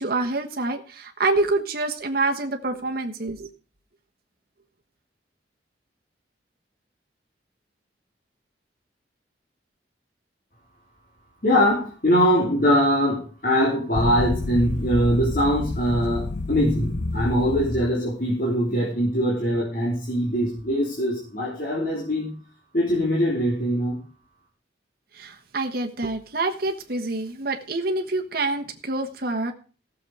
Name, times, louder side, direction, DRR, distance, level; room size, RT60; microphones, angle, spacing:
voice 1, 0.0-3.5 25.2-29.5, right 2 dB, 55° right, 3 dB, 1.3 m, -26 dB
voice 2, 11.4-22.3 22.7-24.0, equal, 50° left, -5 dB, 3.3 m, -22 dB
sound 1, 13.9-18.0, left 2 dB, 65° left, 0.8 m, -30 dB
15.5 x 7.1 x 4.8 m, 0.38 s
head